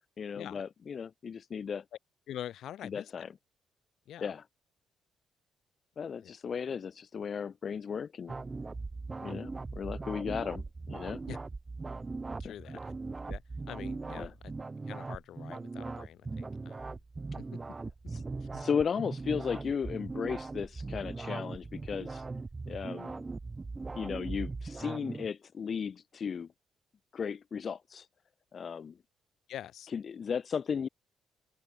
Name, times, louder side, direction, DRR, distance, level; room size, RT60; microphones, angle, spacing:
voice 1, 0.2-1.8 2.9-3.3 4.2-4.4 6.0-8.3 9.2-11.2 12.4-12.5 14.1-14.3 18.1-18.2 18.5-22.2 22.7-23.2 23.9-26.5 27.1-28.1 28.5-29.0 29.9-30.9, left 6 dB, 35° left, 0.3 m, -35 dB
voice 2, 2.3-3.3 4.1-4.3 6.2-6.3 11.3-11.4 12.4-12.9 13.2-14.4 14.9-17.0 17.3-17.5 18.4-18.5 29.5-29.9, left 11 dB, 60° left, 0.7 m, -45 dB
sound 1, 8.3-25.3, right 3 dB, 15° right, 1.1 m, -39 dB
open air
cardioid pair, 180°, 0 cm